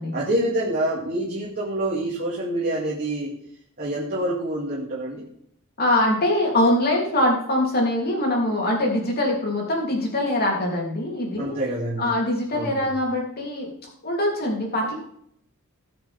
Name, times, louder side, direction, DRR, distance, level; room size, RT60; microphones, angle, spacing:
voice 1, 0.1-3.3 3.8-5.2 11.4-12.1 12.5-12.9, right 1 dB, 45° right, -6 dB, 2.7 m, -26 dB
voice 2, 5.8-11.6 12.0-13.7 14.0-14.9, left 1 dB, 45° left, -1 dB, 3.2 m, -23 dB
18.5 x 6.8 x 3.6 m, 0.70 s
head